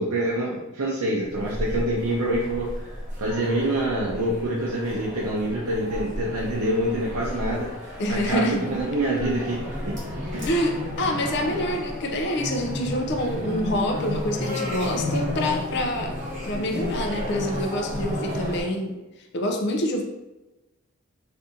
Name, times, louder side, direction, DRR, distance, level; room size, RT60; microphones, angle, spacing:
voice 1, 0.0-2.9 3.2-7.7 8.1-10.0 10.3-10.5, right 1 dB, 90° right, -4 dB, 0.5 m, -26 dB
sound 1, 1.3-18.6, left 1 dB, 35° right, 1.1 m, -33 dB
voice 2, 8.0-8.7 10.4-16.2 16.4-19.0 19.3-20.0, left 1 dB, 50° left, 3 dB, 0.4 m, -26 dB
2.6 x 2.6 x 3.6 m, 1.0 s
head